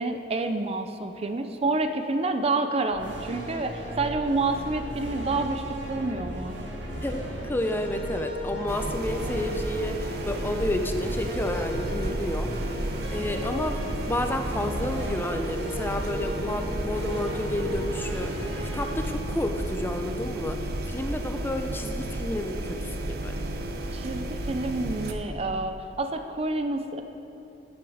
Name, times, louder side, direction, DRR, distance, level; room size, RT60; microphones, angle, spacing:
voice 1, 0.0-6.6 23.9-27.0, right 3 dB, 35° right, 7 dB, 0.5 m, -28 dB
sound 1, 2.9-20.3, equal, 80° right, 1.7 m, -36 dB
voice 2, 7.0-13.8 14.1-18.3 18.7-20.6 20.9-23.4, left 1 dB, 10° left, 5 dB, 0.6 m, -30 dB
sound 2, 8.7-25.1, right 1 dB, 60° right, 0.8 m, -33 dB
sound 3, 16.5-17.5 17.8-18.7 19.0-20.0 20.3-21.2, left 1 dB, 55° left, 1.1 m, -41 dB
11.0 x 8.8 x 4.9 m, 2.8 s
head